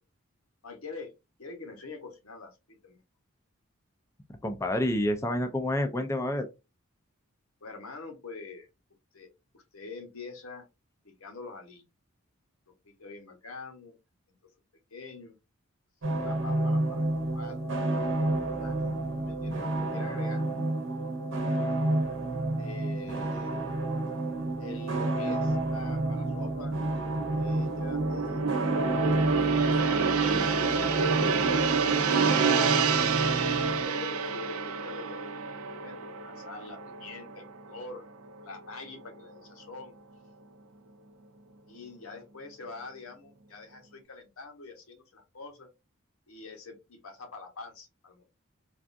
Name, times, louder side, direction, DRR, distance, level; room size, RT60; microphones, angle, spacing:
voice 1, 0.6-1.1 1.4-3.0 7.6-8.7 9.1-9.3 9.5-10.7 11.0-11.9 12.8-14.0 14.9-15.4 16.2-17.0 17.3-17.9 18.4-20.4 22.6-23.9 24.6-26.7 27.2-28.4 29.0-32.7 33.6-38.0 38.4-39.9 41.7-45.7 46.3-48.3, left 3 dB, 85° left, 0.9 m, -45 dB
voice 2, 4.4-6.5, left 1 dB, 15° left, 0.3 m, -28 dB
sound 1, 16.0-33.9, right 2 dB, 60° right, 0.8 m, -30 dB
Gong, 25.5-38.0 38.3-38.6, right 5 dB, 90° right, 0.5 m, -29 dB
3.4 x 2.3 x 2.5 m
head